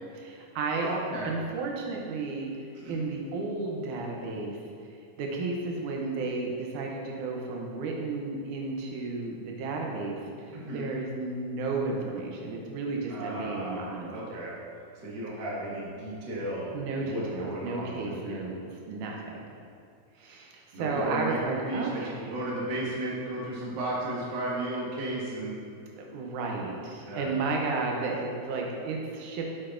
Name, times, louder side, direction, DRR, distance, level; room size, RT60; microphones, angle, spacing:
voice 1, 0.1-1.0 1.2-4.6 5.2-10.2 10.7-14.1 14.3-14.4 16.7-18.6 18.9-19.4 20.2-22.3 26.0-29.5, right 3 dB, 80° right, 0 dB, 2.2 m, -33 dB
voice 2, 0.8-1.3 2.8-3.0 10.5-10.9 13.1-13.9 14.1-14.6 15.0-18.4 20.7-25.6 27.1-27.3, right 1 dB, 45° right, -6 dB, 1.7 m, -34 dB
9.9 x 6.7 x 2.5 m, 2.4 s
omnidirectional pair, 3.6 m